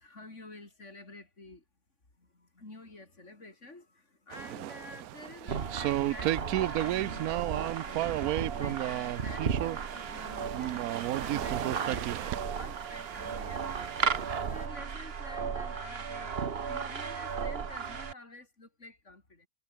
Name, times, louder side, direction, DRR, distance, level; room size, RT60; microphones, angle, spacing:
voice 1, 0.0-1.6 2.2-13.9 14.5-19.5, left 2 dB, 45° left, 5.0 m, -49 dB
sound 1, 4.3-14.6, right 14 dB, 75° right, 1.0 m, -34 dB
sound 2, 5.5-18.1, right 6 dB, 40° right, 1.3 m, -35 dB
omnidirectional pair, 1.7 m